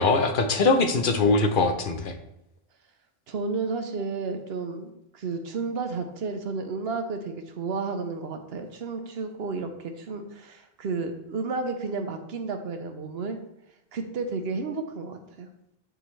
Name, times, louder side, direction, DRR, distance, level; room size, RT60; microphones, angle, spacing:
voice 1, 0.0-2.1, left 3 dB, 60° left, 6 dB, 0.8 m, -22 dB
voice 2, 3.3-13.4 13.9-15.5, right 4 dB, 75° right, 6 dB, 1.0 m, -32 dB
10.0 x 3.9 x 3.2 m, 0.83 s
omnidirectional pair, 1.1 m